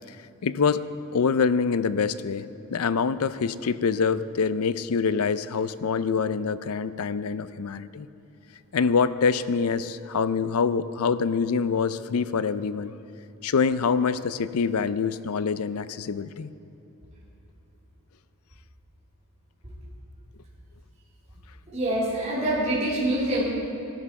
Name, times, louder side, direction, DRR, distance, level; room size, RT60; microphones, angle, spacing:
voice 1, 0.4-0.9 1.1-8.1 8.7-12.9 13.4-16.5, left 5 dB, 80° left, 14 dB, 0.5 m, -25 dB
voice 2, 21.7-23.4, right 1 dB, 35° right, -8 dB, 3.4 m, -25 dB
15.5 x 12.5 x 4.8 m, 2.9 s
head